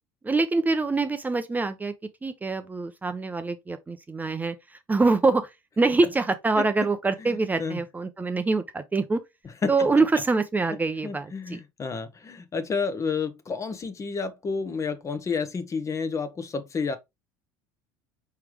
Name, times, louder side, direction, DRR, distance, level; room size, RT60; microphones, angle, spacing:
voice 1, 0.2-1.9 2.2-9.2 9.7-11.6, right 3 dB, 15° right, 0.6 m, -25 dB
voice 2, 7.2-7.8 9.6-9.9 11.0-17.0, left 5 dB, 30° left, 1.0 m, -30 dB
4.7 x 3.4 x 3.1 m
supercardioid pair, 90°, 11 cm